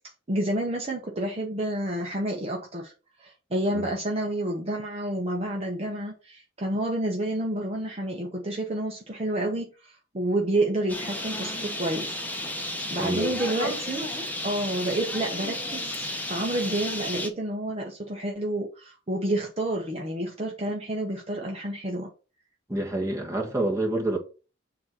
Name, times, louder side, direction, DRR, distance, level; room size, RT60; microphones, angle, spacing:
voice 1, 0.3-2.9 3.2-12.2 12.9-14.1 14.4-22.1, right 1 dB, 30° right, 1.0 m, -29 dB
Bird, 10.9-17.3, left 1 dB, 10° left, 1.1 m, -33 dB
voice 2, 13.0-13.4 22.7-24.2, right 2 dB, 15° right, 1.5 m, -27 dB
7.4 x 2.9 x 6.0 m
head